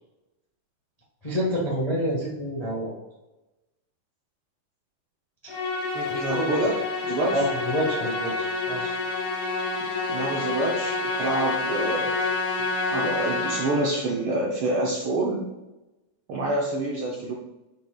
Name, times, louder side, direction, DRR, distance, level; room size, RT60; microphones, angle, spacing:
voice 1, 1.2-2.9 6.1-6.7 7.3-9.0, equal, 90° left, -4 dB, 0.3 m, -28 dB
Musical instrument, 5.5-14.0, left 3 dB, 70° left, 2.5 m, -28 dB
voice 2, 5.9-6.7 7.0-7.4 10.1-12.1 12.9-15.4 16.3-17.3, right 2 dB, 85° right, -2 dB, 1.2 m, -27 dB
7.6 x 6.1 x 2.3 m, 1.0 s
omnidirectional pair, 3.6 m